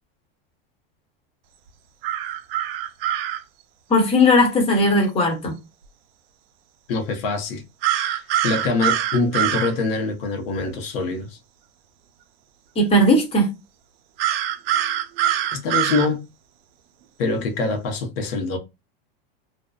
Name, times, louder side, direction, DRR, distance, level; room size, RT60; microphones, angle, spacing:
sound 1, 2.0-3.4 7.8-9.7 14.2-16.1, right 11 dB, 75° right, 0.4 m, -23 dB
voice 1, 3.9-5.5 12.8-13.5, left 1 dB, 20° left, 0.9 m, -17 dB
voice 2, 6.9-7.6 8.0-11.4 15.5-16.2 17.2-18.6, left 3 dB, 70° left, 0.8 m, -24 dB
2.5 x 2.1 x 2.3 m
supercardioid pair, 130°, 30 cm